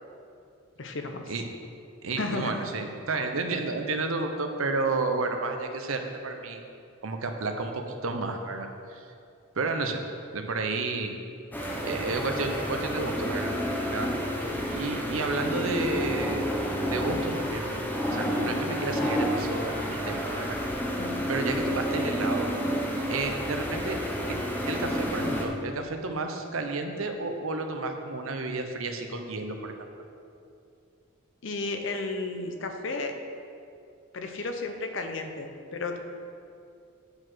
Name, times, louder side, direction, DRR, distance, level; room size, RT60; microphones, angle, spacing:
voice 1, 0.8-1.2 2.2-2.6 21.0-21.3 31.4-33.2 34.1-36.0, left 3 dB, 60° left, 5 dB, 0.7 m, -33 dB
voice 2, 2.0-6.6 7.0-9.1 9.6-10.0 10.3-11.1 11.8-13.5 13.8-14.1 14.7-16.5 16.9-17.7 18.1-20.6 21.3-22.5 23.1-24.0 24.3-24.4 24.6-29.7, right 3 dB, 75° right, 5 dB, 0.8 m, -31 dB
sound 1, 11.5-25.5, equal, 10° left, 0.7 m, -30 dB
8.5 x 4.7 x 6.1 m, 2.5 s
head